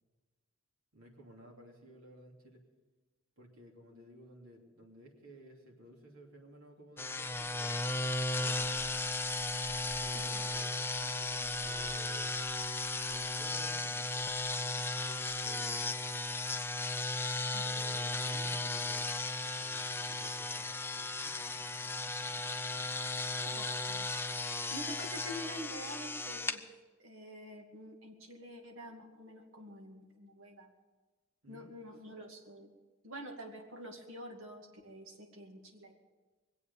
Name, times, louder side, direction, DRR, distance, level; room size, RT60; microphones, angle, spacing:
voice 1, 0.9-2.6 3.4-8.7 10.0-12.5 13.0-16.1 17.6-19.1 19.4-22.9 31.4-31.8 32.1-32.2, equal, 85° right, 0 dB, 2.9 m, -56 dB
sound 1, 7.0-26.6, left 2 dB, 10° left, 0.5 m, -36 dB
voice 2, 10.1-10.5 17.5-18.0 23.4-24.1 24.7-26.6 27.0-30.7 31.5-32.7 33.0-35.9, equal, 65° right, 1 dB, 2.4 m, -47 dB
22.0 x 8.4 x 7.0 m, 1.3 s
head